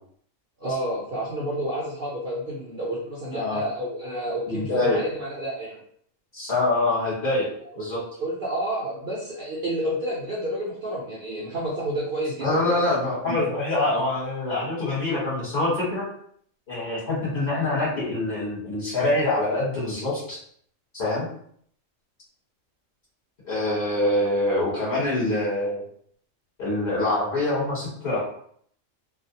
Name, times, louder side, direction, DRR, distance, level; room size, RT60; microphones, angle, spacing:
voice 1, 0.6-5.8 7.8-7.9 8.2-12.9 13.3-13.4 13.9-14.0, right 1 dB, 55° right, -6 dB, 0.6 m, -30 dB
voice 2, 4.5-5.0 6.3-7.5 7.8-8.0 12.4-16.0 16.7-20.4 20.9-21.3 23.4-25.8 26.6-28.2, left 2 dB, 35° left, -8 dB, 1.0 m, -25 dB
2.3 x 2.0 x 2.7 m, 0.63 s
omnidirectional pair, 1.4 m